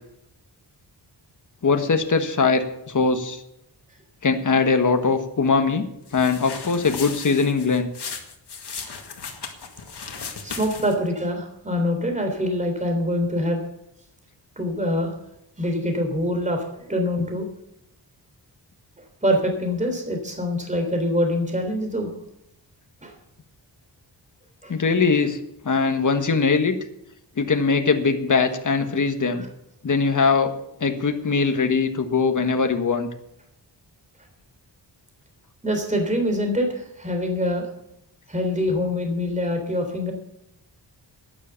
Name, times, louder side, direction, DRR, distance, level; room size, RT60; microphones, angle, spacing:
voice 1, 1.6-3.4 4.2-5.9 6.1-7.9 24.7-25.4 25.6-26.7 27.4-29.5 29.8-30.5 30.8-33.1, left 4 dB, 45° left, 6 dB, 1.5 m, -21 dB
sound 1, 6.1-11.1, left 5 dB, 65° left, 2.1 m, -36 dB
voice 2, 10.2-13.6 14.6-15.1 15.6-17.5 19.2-22.1 23.0-23.1 24.6-24.8 35.6-37.7 38.3-40.1, left 1 dB, 15° right, 4 dB, 3.5 m, -25 dB
12.0 x 10.0 x 7.0 m, 0.79 s
wide cardioid pair, 115°, 43 cm